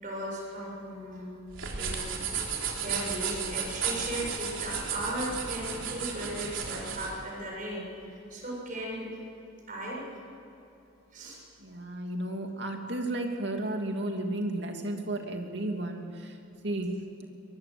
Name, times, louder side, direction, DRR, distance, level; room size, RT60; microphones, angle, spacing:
voice 1, 0.0-1.4 1.8-2.1 2.8-9.1 9.7-10.0 11.1-11.4, right 1 dB, 40° right, -3 dB, 7.0 m, -36 dB
sound 1, 1.5-7.1, right 6 dB, 75° right, 3.7 m, -34 dB
voice 2, 11.6-16.4 16.6-17.0, right 1 dB, 55° right, 3 dB, 2.8 m, -33 dB
22.5 x 21.5 x 7.9 m, 2.9 s
head